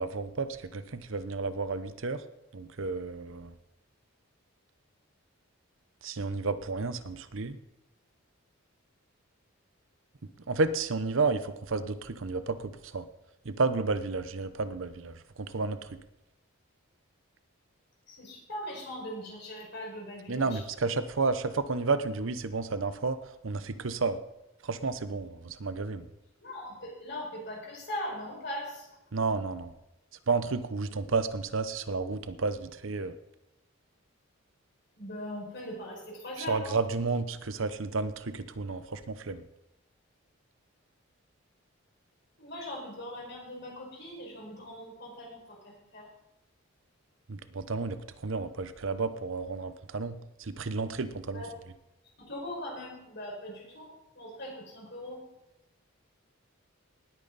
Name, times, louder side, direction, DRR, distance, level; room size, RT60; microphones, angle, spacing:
voice 1, 0.0-2.2 2.5-3.5 6.0-7.6 10.5-13.1 13.4-15.8 20.3-23.2 23.4-24.2 24.6-26.0 29.1-29.7 30.3-33.1 36.4-39.5 47.3-51.4, right 4 dB, 65° right, 12 dB, 0.8 m, -31 dB
voice 2, 18.1-20.6 26.4-28.9 35.0-36.8 42.4-46.1 51.3-51.6 52.2-55.2, left 1 dB, 50° left, -2 dB, 5.3 m, -40 dB
18.5 x 8.8 x 4.1 m, 0.90 s
head